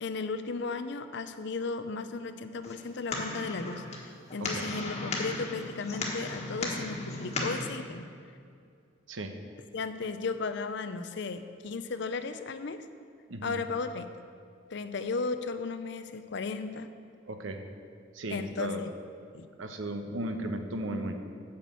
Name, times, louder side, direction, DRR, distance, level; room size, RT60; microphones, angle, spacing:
voice 1, 0.0-8.1 9.7-12.9 13.4-14.1 14.7-16.9 18.3-18.9 19.3-19.5, left 4 dB, 60° left, 10 dB, 0.5 m, -35 dB
sound 1, 2.6-7.7, left 2 dB, 35° left, 1.4 m, -36 dB
voice 2, 13.3-13.6 17.3-17.6 18.1-18.8 19.6-21.2, right 1 dB, 85° right, 6 dB, 0.9 m, -35 dB
8.4 x 6.0 x 7.6 m, 2.3 s
head